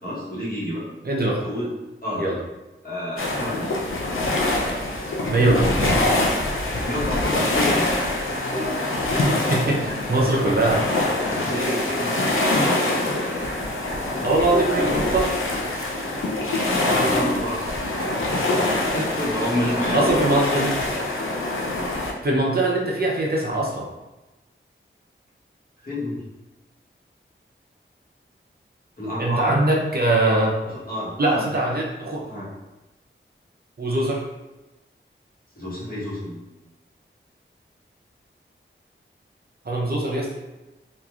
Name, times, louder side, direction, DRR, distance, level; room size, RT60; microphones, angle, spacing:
voice 1, 0.0-0.9 1.4-1.7 2.0-2.2 2.8-3.7 6.8-7.8 11.3-12.8 16.8-17.6 18.9-20.7 25.8-26.2 29.0-29.6 30.9-31.5 31.7-31.8 32.3-32.5 35.5-36.4, left 1 dB, 45° left, -8 dB, 1.2 m, -29 dB
voice 2, 1.0-1.4 2.2-2.4 5.3-6.1 9.1-10.8 14.2-15.4 19.9-20.7 22.2-23.9 29.2-30.6 31.2-32.2 33.8-34.2 39.6-40.3, right 2 dB, 50° right, -3 dB, 0.6 m, -22 dB
sound 1, 3.2-22.1, left 2 dB, 75° left, 0.5 m, -24 dB
sound 2, 8.3-10.1 10.5-13.5 13.9-15.2 15.4-17.4, left 1 dB, 10° left, 0.9 m, -32 dB
3.0 x 2.4 x 2.4 m, 1.1 s
wide cardioid pair, 55°, 21 cm